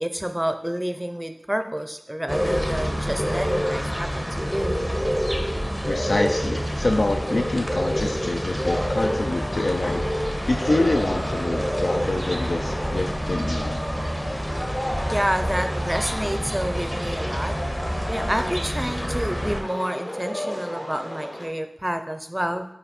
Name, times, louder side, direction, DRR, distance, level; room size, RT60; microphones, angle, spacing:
voice 1, 0.0-4.8 15.1-17.5 18.1-22.7, equal, 10° right, 8 dB, 0.6 m, -28 dB
sound 1, 2.3-19.6, equal, 10° left, 0.8 m, -27 dB
sound 2, 4.3-21.5, equal, 40° left, 1.2 m, -35 dB
voice 2, 5.9-10.1 10.5-13.8, left 2 dB, 70° left, 3 dB, 0.4 m, -26 dB
5.7 x 4.2 x 4.3 m, 0.75 s
wide cardioid pair, 50°, 0 cm